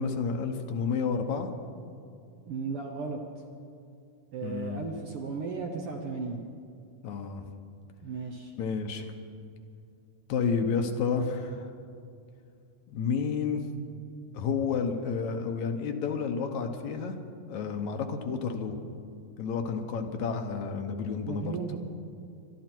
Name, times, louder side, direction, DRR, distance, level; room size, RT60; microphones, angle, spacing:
voice 1, 0.0-1.5 4.4-4.8 7.0-7.4 8.6-9.1 10.3-11.7 12.9-13.6 14.3-17.2 17.5-18.8 19.4-21.6, left 5 dB, 70° left, 5 dB, 2.2 m, -30 dB
voice 2, 2.5-3.2 4.3-6.4 8.0-8.5 21.3-21.8, right 4 dB, 60° right, 1 dB, 1.6 m, -35 dB
23.0 x 12.5 x 4.5 m, 2.5 s
omnidirectional pair, 3.6 m